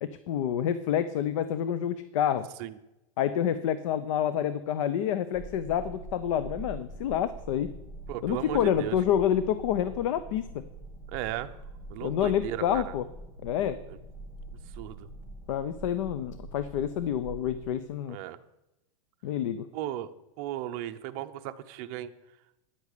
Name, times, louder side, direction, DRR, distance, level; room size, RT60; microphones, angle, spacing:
voice 1, 0.0-2.5 3.2-7.7 8.2-10.5 12.0-13.0 13.4-13.8 15.5-18.2 19.2-19.6, left 10 dB, 60° left, 13 dB, 0.6 m, -28 dB
sound 1, 5.3-17.5, right 2 dB, 15° left, 3.9 m, -44 dB
voice 2, 8.1-9.0 11.1-11.5 11.9-12.8 13.9-14.0 14.8-15.1 18.1-18.4 19.7-20.1 20.4-22.1, right 13 dB, 40° right, 9 dB, 0.7 m, -36 dB
10.0 x 8.3 x 6.7 m, 0.92 s
supercardioid pair, 165°, 18 cm